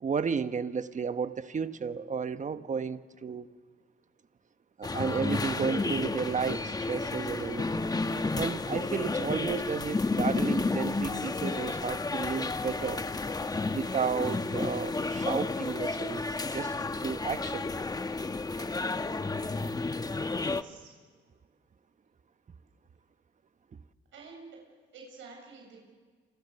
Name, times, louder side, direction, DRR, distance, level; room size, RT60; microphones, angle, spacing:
voice 1, 0.0-3.5 4.8-7.9 8.3-13.0 13.7-16.2 16.5-16.7 17.0-17.7, right 6 dB, 40° right, 11 dB, 1.2 m, -33 dB
sound 1, 4.8-20.6, left 3 dB, 20° left, 1.0 m, -31 dB
voice 2, 19.9-21.0 24.1-24.6 24.9-25.8, right 4 dB, 75° right, 0 dB, 7.5 m, -50 dB
29.5 x 26.5 x 6.9 m, 1.5 s
cardioid pair, 90°, 20 cm